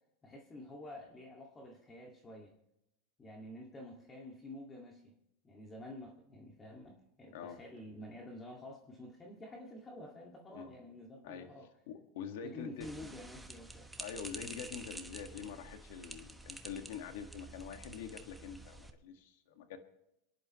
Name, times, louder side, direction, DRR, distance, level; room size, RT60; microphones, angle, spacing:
voice 1, 0.2-2.5 3.2-5.1 5.4-11.7 12.4-13.9, left 1 dB, 20° left, 0 dB, 2.1 m, -49 dB
voice 2, 11.9-13.1 14.0-19.8, left 7 dB, 70° left, 6 dB, 1.8 m, -45 dB
sound 1, 12.8-18.9, right 1 dB, 5° right, 1.0 m, -49 dB
28.0 x 10.5 x 3.1 m, 0.84 s
supercardioid pair, 130°, 0 cm